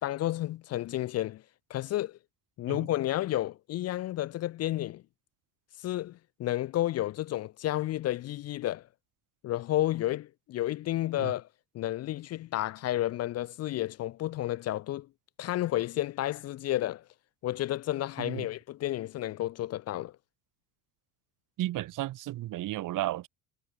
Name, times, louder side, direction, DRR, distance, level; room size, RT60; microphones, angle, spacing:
voice 1, 0.0-1.4 1.7-2.2 2.6-5.0 5.8-8.9 9.4-11.5 11.7-15.1 15.4-17.0 17.4-20.1, left 14 dB, 35° left, 0.6 m, -31 dB
voice 2, 21.6-23.3, right 15 dB, 45° right, 1.3 m, -33 dB
hypercardioid pair, 65°, 43 cm